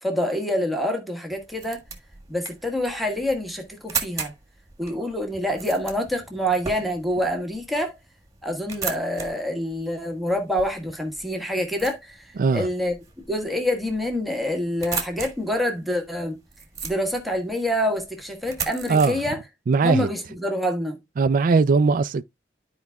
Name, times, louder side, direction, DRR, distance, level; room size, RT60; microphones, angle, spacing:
voice 1, 0.0-1.8 2.3-4.3 4.8-7.9 8.4-12.9 13.3-16.4 16.8-19.4 19.8-21.0, equal, ahead, 1.3 m, -26 dB
sound 1, 1.3-19.1, right 5 dB, 20° right, 1.6 m, -38 dB
voice 2, 18.9-19.2 19.7-20.1 21.2-22.2, right 4 dB, 45° right, 0.4 m, -19 dB
13.0 x 4.7 x 2.3 m
head